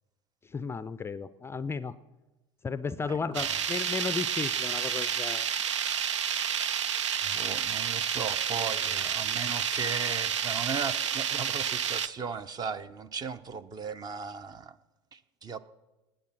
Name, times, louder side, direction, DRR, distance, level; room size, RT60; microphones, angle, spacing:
voice 1, 0.4-1.9 2.6-5.5, left 5 dB, 15° left, 14 dB, 0.5 m, -34 dB
voice 2, 3.1-3.6 7.2-14.8 15.1-15.6, right 5 dB, 25° right, 14 dB, 0.7 m, -37 dB
sound 1, 3.3-12.1, right 8 dB, 80° right, 0.5 m, -30 dB
19.0 x 8.4 x 6.0 m, 1.1 s
figure-of-eight pair, 80°, 15 cm